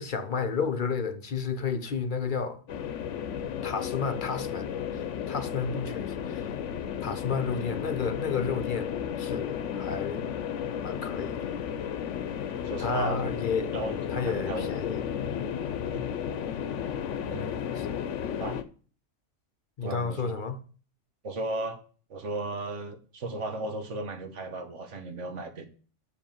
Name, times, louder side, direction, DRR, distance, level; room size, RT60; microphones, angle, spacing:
voice 1, 0.0-2.6 3.6-6.5 7.0-10.2 10.8-11.5 12.8-13.7 14.1-15.0 17.8-17.9 19.8-20.6, left 5 dB, 45° left, 0.8 m, -32 dB
sound 1, 2.7-18.6, left 8 dB, 80° left, 1.0 m, -33 dB
voice 2, 12.6-13.3 13.7-15.0 15.9-16.0 17.3-17.7 18.4-18.6 19.8-20.3 21.2-21.8 22.1-25.7, right 2 dB, 75° right, 1.6 m, -35 dB
6.8 x 5.3 x 7.2 m
omnidirectional pair, 1.3 m